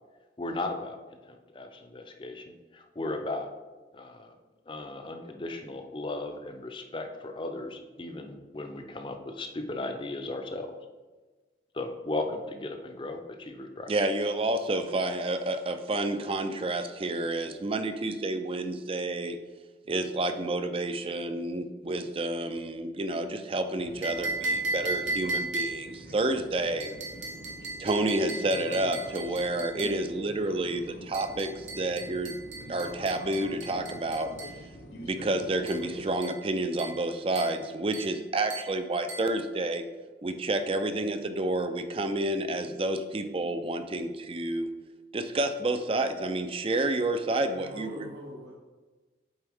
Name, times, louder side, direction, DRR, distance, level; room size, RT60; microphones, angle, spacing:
voice 1, 0.4-1.0 1.2-3.5 3.9-4.3 4.7-10.7 11.7-13.9, left 2 dB, 25° left, 4 dB, 0.5 m, -36 dB
voice 2, 13.9-19.4 19.9-26.9 27.8-32.4 32.7-34.3 35.0-39.9 40.2-44.7 45.1-48.1, right 2 dB, 30° right, 8 dB, 0.4 m, -29 dB
sound 1, 23.8-36.1, equal, 65° left, 0.9 m, -46 dB
sound 2, 24.0-26.0 26.8-30.0 31.1-34.6 35.7-35.9 36.2-36.5 36.8-37.1 37.4-37.6 37.9-38.2 38.5-38.8 39.1-39.3, right 2 dB, 80° right, 1.4 m, -36 dB
voice 3, 47.4-48.5, equal, 65° right, -3 dB, 0.8 m, -42 dB
8.0 x 4.2 x 3.5 m, 1.3 s
head